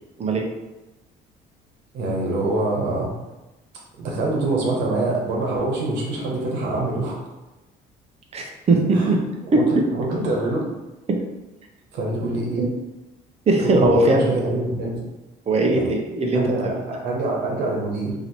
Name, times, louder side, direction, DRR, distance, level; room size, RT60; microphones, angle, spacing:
voice 1, 1.9-3.1 4.0-7.2 8.9-9.1 9.5-10.6 11.9-12.7 13.6-15.0 15.7-15.9 16.3-18.1, right 2 dB, 85° right, -2 dB, 1.2 m, -25 dB
voice 2, 8.3-9.2 9.5-9.8 11.1-11.2 12.6-12.7 13.5-14.4 15.5-16.8, right 2 dB, 40° right, 1 dB, 0.8 m, -20 dB
2.9 x 2.9 x 4.2 m, 1.1 s
cardioid pair, 110°, 17 cm